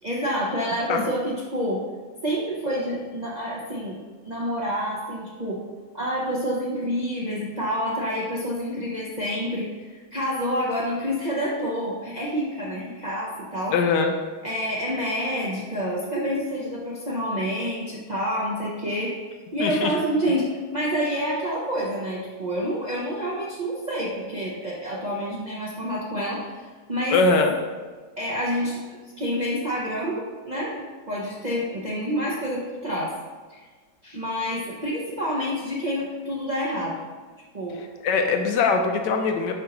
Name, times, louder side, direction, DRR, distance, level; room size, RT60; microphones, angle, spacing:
voice 1, 0.0-1.8 2.2-4.0 4.2-5.6 5.9-13.8 14.4-19.1 19.5-26.6 26.9-27.2 28.2-33.1 33.5-33.6 34.0-37.0 37.5-37.8, equal, 90° right, -6 dB, 0.3 m, -28 dB
voice 2, 13.7-14.1 19.6-19.9 27.1-27.5 38.0-39.5, left 4 dB, 75° left, 4 dB, 1.2 m, -21 dB
6.7 x 5.1 x 2.9 m, 1.4 s
omnidirectional pair, 2.0 m